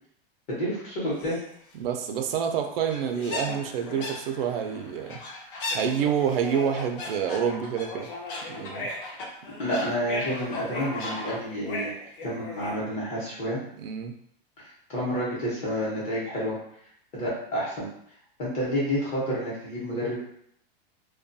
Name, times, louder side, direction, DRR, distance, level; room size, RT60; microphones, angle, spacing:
voice 1, 0.5-1.4 9.6-11.9 12.2-13.6 14.6-16.6 17.1-17.9 18.4-20.3, equal, 25° left, -7 dB, 0.9 m, -29 dB
sound 1, 1.2-1.5 2.2-2.3 2.5-2.6 2.9-12.8, left 2 dB, 65° left, 0.7 m, -36 dB
voice 2, 1.8-5.2 5.7-8.1 8.5-8.9 13.8-14.1, right 8 dB, 75° right, 5 dB, 0.4 m, -28 dB
2.3 x 2.2 x 2.5 m, 0.68 s
supercardioid pair, 170°, 29 cm